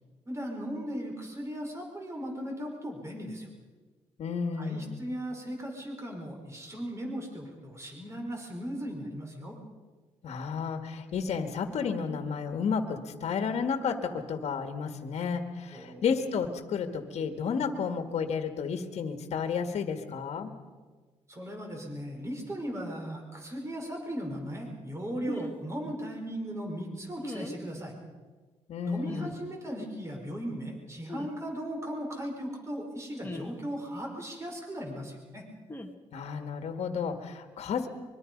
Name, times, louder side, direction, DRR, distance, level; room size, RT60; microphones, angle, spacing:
voice 1, 0.3-3.5 4.6-9.6 15.7-16.0 21.3-27.9 28.8-35.4, equal, 25° right, 1 dB, 5.2 m, -37 dB
voice 2, 4.2-5.0 10.2-20.5 28.7-29.3 36.1-37.9, left 6 dB, 65° left, 7 dB, 2.0 m, -32 dB
sound 1, 25.3-25.6 27.2-27.6 29.0-29.3 31.1-31.3 33.2-33.6 35.7-35.9, left 1 dB, 15° left, 2.0 m, -38 dB
24.5 x 23.0 x 5.4 m, 1.4 s
cardioid pair, 90°, 12 cm